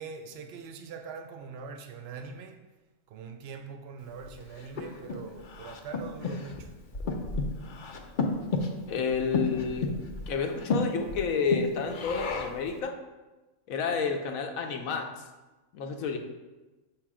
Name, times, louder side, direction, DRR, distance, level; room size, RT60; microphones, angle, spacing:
voice 1, 0.0-2.6 3.1-6.7, right 5 dB, 60° right, 0.7 m, -42 dB
Breathing, 4.2-12.7, left 3 dB, 55° left, 0.6 m, -33 dB
voice 2, 8.9-9.9 10.3-13.0 13.7-15.1 15.7-16.2, left 5 dB, 80° left, 1.1 m, -30 dB
6.6 x 3.1 x 4.8 m
omnidirectional pair, 1.4 m